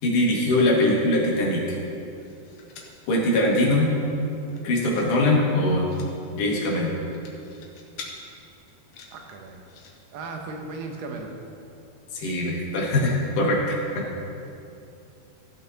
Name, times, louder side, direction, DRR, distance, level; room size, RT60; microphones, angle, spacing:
voice 1, 0.0-1.8 3.1-3.9 4.6-5.9 6.3-7.0 12.1-14.0, left 1 dB, 60° left, -3 dB, 2.7 m, -22 dB
sound 1, 1.9-3.0 3.5-3.6 3.8-4.1 4.4-5.1 5.4-6.1 6.9-8.1 8.7-9.9 10.8-10.9 11.2-11.3, left 5 dB, 85° left, 1.5 m, -45 dB
voice 2, 9.1-9.6 10.1-11.3, right 3 dB, 70° right, 2 dB, 2.4 m, -36 dB
14.5 x 6.3 x 4.0 m, 2.6 s
omnidirectional pair, 4.6 m